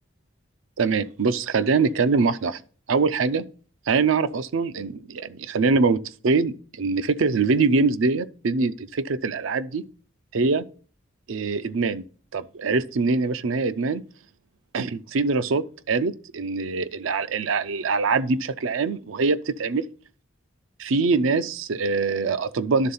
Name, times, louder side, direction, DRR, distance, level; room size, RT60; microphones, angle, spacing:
voice 1, 0.8-2.6 2.9-3.4 3.9-9.9 10.3-10.7 11.3-12.0 12.3-14.0 14.7-19.9 20.8-22.9, right 4 dB, 80° right, 0.5 m, -23 dB
11.0 x 3.8 x 5.5 m
head